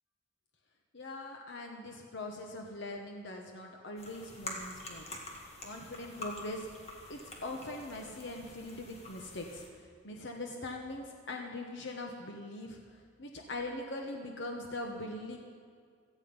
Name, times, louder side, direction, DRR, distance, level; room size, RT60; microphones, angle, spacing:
voice 1, 0.9-5.0 5.6-6.7 7.1-9.6 10.0-12.8 13.2-15.4, left 2 dB, 60° left, 2 dB, 1.2 m, -41 dB
sound 1, 4.0-9.7, left 2 dB, 30° left, 2.2 m, -46 dB
17.0 x 14.5 x 5.5 m, 2.2 s
head